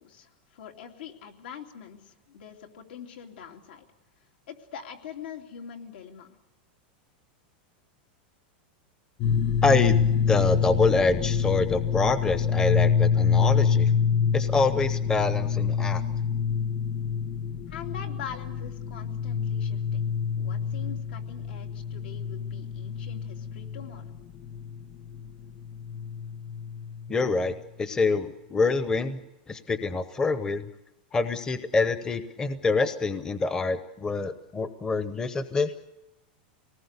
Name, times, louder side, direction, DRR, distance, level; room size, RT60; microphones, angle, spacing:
voice 1, 0.0-3.8 4.5-6.3 17.7-20.0 20.4-24.0, left 8 dB, 80° left, 3 dB, 3.0 m, -43 dB
sound 1, 9.2-27.5, left 7 dB, 45° left, 1.9 m, -27 dB
voice 2, 9.6-13.9 14.3-16.0 27.1-29.2 29.5-30.6 31.1-35.7, left 3 dB, 15° left, 11 dB, 0.8 m, -26 dB
24.5 x 19.0 x 8.2 m, 0.95 s
supercardioid pair, 155°, 5 cm